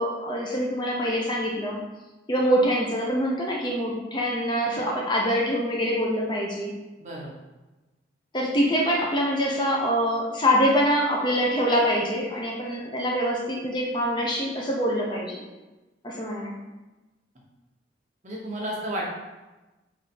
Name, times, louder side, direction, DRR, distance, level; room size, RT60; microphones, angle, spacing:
voice 1, 0.0-1.8 2.3-6.7 8.3-15.4 16.0-16.5, equal, 25° left, -2 dB, 0.6 m, -25 dB
voice 2, 7.0-7.3 18.2-19.1, right 1 dB, 40° right, -3 dB, 1.0 m, -32 dB
4.7 x 2.6 x 4.2 m, 1.1 s
head